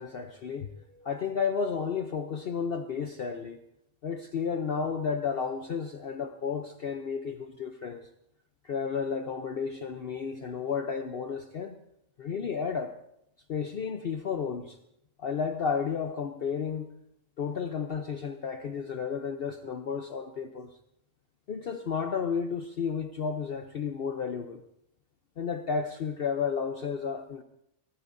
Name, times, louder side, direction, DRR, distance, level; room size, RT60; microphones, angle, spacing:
voice 1, 0.0-3.6 4.0-8.1 8.6-11.8 12.2-12.9 13.5-14.8 15.2-16.9 17.4-20.7 21.5-24.6 25.4-27.4, left 6 dB, 55° left, 7 dB, 0.8 m, -32 dB
23.5 x 17.0 x 2.6 m, 0.77 s
omnidirectional pair, 1.4 m